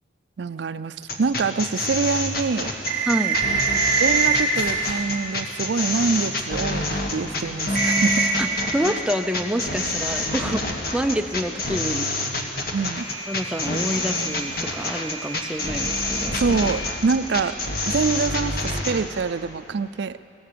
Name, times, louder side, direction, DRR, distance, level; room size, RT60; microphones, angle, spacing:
voice 1, 0.4-2.7 4.0-8.3 12.7-13.1 16.3-17.6 17.9-20.2, right 4 dB, 65° right, 13 dB, 0.4 m, -25 dB
sound 1, 1.0-19.0, left 2 dB, 55° left, 1.9 m, -27 dB
sound 2, 1.9-6.2 6.8-6.9 7.2-7.4 7.7-10.6 13.0-17.4, right 4 dB, 50° right, 2.1 m, -27 dB
voice 2, 3.1-3.4 8.4-12.4 13.3-16.4, equal, 5° right, 5 dB, 0.5 m, -27 dB
sound 3, 3.5-7.0 7.5-8.2 16.0-16.1, right 1 dB, 15° left, 4.4 m, -47 dB
22.0 x 17.5 x 6.9 m, 2.7 s
head